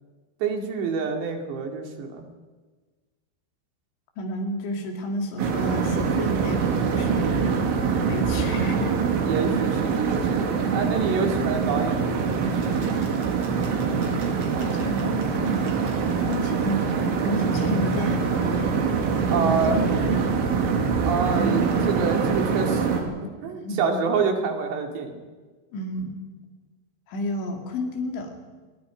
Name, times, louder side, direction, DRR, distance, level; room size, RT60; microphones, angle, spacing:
voice 1, 0.4-2.3 9.3-12.2 19.3-19.9 21.0-23.2 23.4-25.2, right 5 dB, 70° right, 3 dB, 4.7 m, -27 dB
voice 2, 4.2-7.3 8.1-9.0 10.3-10.9 11.3-11.5 13.9-16.0 16.3-18.8 19.3-20.2 21.3-21.9 23.6-23.8 25.7-26.2 27.1-28.4, equal, 80° left, 3 dB, 4.8 m, -31 dB
sound 1, 5.4-23.0, right 5 dB, 85° right, 4.8 m, -24 dB
sound 2, 12.2-16.4, right 2 dB, 35° right, 4.6 m, -43 dB
27.0 x 22.5 x 5.2 m, 1.4 s
omnidirectional pair, 5.2 m